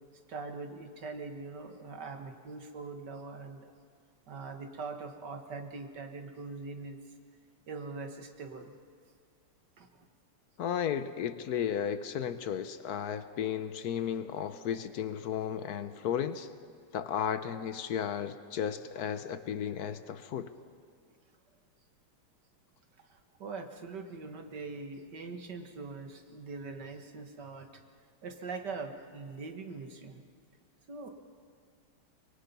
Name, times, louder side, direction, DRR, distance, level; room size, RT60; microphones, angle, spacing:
voice 1, 0.3-3.7 4.3-7.0 7.7-8.7 9.8-9.9 23.4-27.7 28.2-30.2 30.9-31.1, right 4 dB, 55° right, 6 dB, 2.0 m, -42 dB
voice 2, 10.6-16.5 16.9-20.5, left 8 dB, 65° left, 12 dB, 1.0 m, -34 dB
24.0 x 23.0 x 5.5 m, 2.1 s
omnidirectional pair, 2.4 m